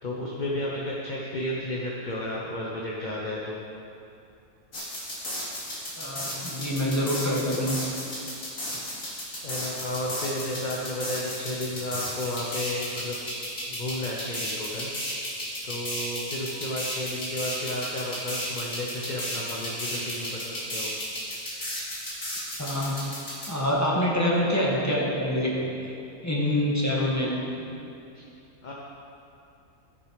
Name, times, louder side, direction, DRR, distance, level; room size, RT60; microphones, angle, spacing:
voice 1, 0.0-3.6 8.7-8.8 9.4-13.2 13.7-15.1 15.6-20.9 28.1-28.2 28.6-28.7, left 1 dB, 35° left, -3 dB, 1.1 m, -33 dB
sound 1, 4.7-23.5, equal, 70° left, 3.0 m, -34 dB
voice 2, 6.0-7.8 22.6-23.0 23.5-25.6 25.8-25.9 26.2-27.3, left 1 dB, 10° left, -5 dB, 1.9 m, -26 dB
15.0 x 6.8 x 4.9 m, 2.7 s
omnidirectional pair, 1.5 m